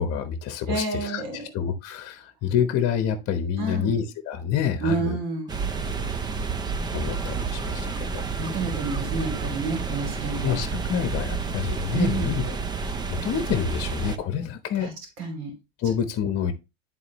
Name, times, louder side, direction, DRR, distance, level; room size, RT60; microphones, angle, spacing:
voice 1, 0.0-5.2 6.9-8.2 10.4-12.6 13.1-14.9 15.8-16.5, left 8 dB, 35° left, 8 dB, 1.0 m, -27 dB
voice 2, 0.7-1.5 3.6-3.9 4.8-5.5 7.0-7.1 8.4-10.6 11.9-12.4 14.8-15.5, right 3 dB, 55° right, 4 dB, 3.0 m, -29 dB
sound 1, 5.5-14.2, right 5 dB, 10° right, 0.3 m, -30 dB
11.0 x 3.9 x 3.1 m, 0.26 s
supercardioid pair, 115°, 41 cm